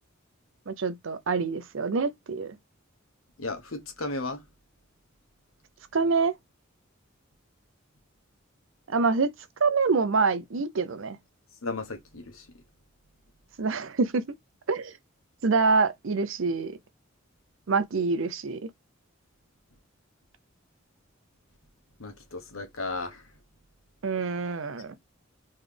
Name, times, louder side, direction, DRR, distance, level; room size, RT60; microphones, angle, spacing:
voice 1, 0.7-2.5 5.9-6.3 8.9-9.3 9.6-11.2 13.6-14.3 14.7-14.9 15.4-16.8 17.7-18.7 24.0-24.9, right 4 dB, 70° right, 0.6 m, -26 dB
voice 2, 3.4-4.4 11.6-12.5 22.0-23.3, left 3 dB, 80° left, 1.2 m, -35 dB
3.9 x 3.2 x 3.3 m
head